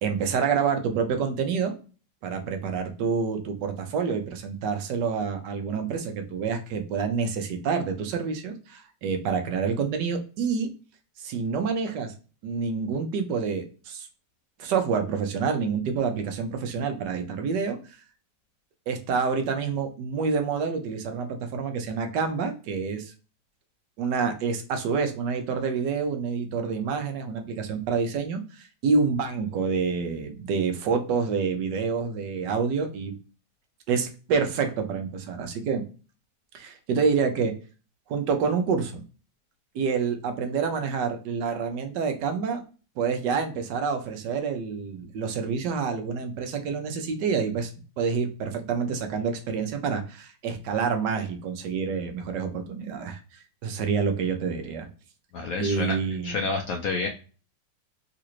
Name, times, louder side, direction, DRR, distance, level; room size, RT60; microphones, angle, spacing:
voice 1, 0.0-1.7 2.2-10.7 11.2-12.1 12.4-14.1 14.6-17.8 18.9-23.1 24.0-33.1 33.9-35.9 36.5-37.5 38.1-39.0 39.7-42.6 43.0-47.7 48.0-53.2 53.6-54.9 55.6-56.5, right 5 dB, 75° right, 5 dB, 1.3 m, -27 dB
voice 2, 55.3-56.0 56.2-57.1, left 4 dB, 70° left, 3 dB, 0.8 m, -29 dB
3.8 x 2.5 x 2.9 m, 0.35 s
omnidirectional pair, 1.9 m